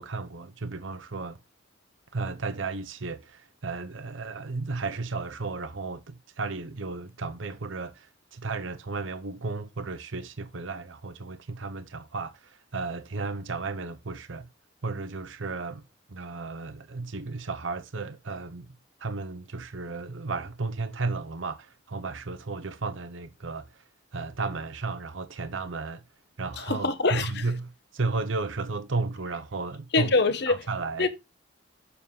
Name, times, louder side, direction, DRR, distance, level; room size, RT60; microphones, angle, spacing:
voice 1, 0.0-1.4 2.1-14.5 14.8-15.8 16.1-18.7 19.0-23.8 24.1-26.0 26.4-30.1 30.5-31.1, right 3 dB, 75° right, 0.8 m, -34 dB
voice 2, 26.6-27.4 29.9-30.6 31.0-31.1, left 3 dB, 60° left, 1.1 m, -24 dB
7.0 x 7.0 x 3.7 m
head